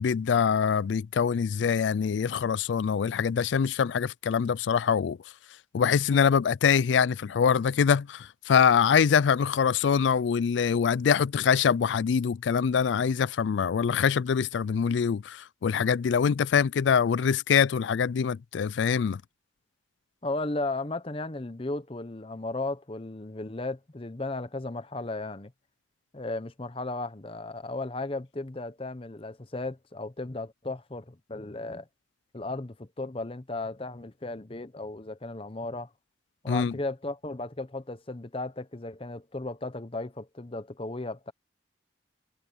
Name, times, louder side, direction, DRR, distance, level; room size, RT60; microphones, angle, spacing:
voice 1, 0.0-5.2 5.7-19.2 36.5-36.7, left 7 dB, 80° left, 0.4 m, -24 dB
voice 2, 20.2-25.5 26.1-31.9 32.3-35.9 36.4-41.3, left 2 dB, 30° left, 0.9 m, -35 dB
head